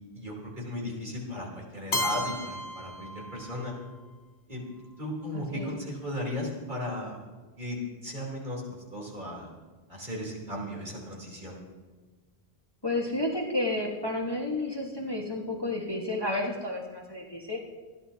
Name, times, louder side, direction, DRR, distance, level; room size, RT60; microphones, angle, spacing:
voice 1, 0.1-3.7 4.5-4.6 5.0-7.2 7.6-8.6 8.9-9.5 9.9-11.6, left 1 dB, 50° right, -3 dB, 3.7 m, -36 dB
Keyboard (musical), 1.9-3.9, left 1 dB, 90° left, 1.3 m, -33 dB
voice 2, 5.3-5.7 12.8-17.6, left 2 dB, 25° left, -1 dB, 1.4 m, -31 dB
26.0 x 11.0 x 2.8 m, 1.4 s
omnidirectional pair, 1.0 m